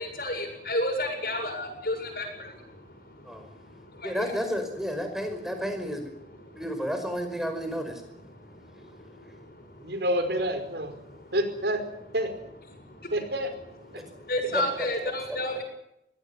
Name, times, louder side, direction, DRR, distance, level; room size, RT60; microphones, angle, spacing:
voice 1, 0.0-4.3 6.2-6.6 8.0-10.0 11.0-11.3 12.8-13.1 13.9-15.6, left 1 dB, 55° left, 5 dB, 7.3 m, -33 dB
voice 2, 4.0-6.1 6.6-8.0 14.5-14.6, equal, ahead, 5 dB, 5.2 m, -31 dB
voice 3, 9.8-10.9 11.3-11.8 12.1-12.3 13.1-13.5 13.9-14.0, right 1 dB, 75° right, 8 dB, 4.9 m, -28 dB
23.0 x 17.5 x 9.7 m, 0.83 s
head